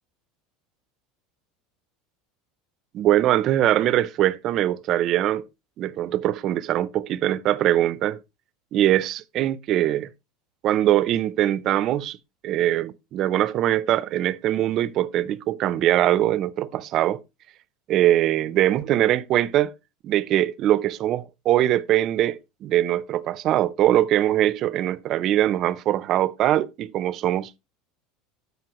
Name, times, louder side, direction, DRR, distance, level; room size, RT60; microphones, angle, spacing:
voice 1, 2.9-5.4 5.8-8.2 8.7-10.1 10.6-12.2 12.4-17.2 17.9-19.7 20.0-27.5, right 13 dB, 35° right, 0.5 m, -22 dB
13.5 x 5.3 x 2.9 m
cardioid pair, 160°, 0 cm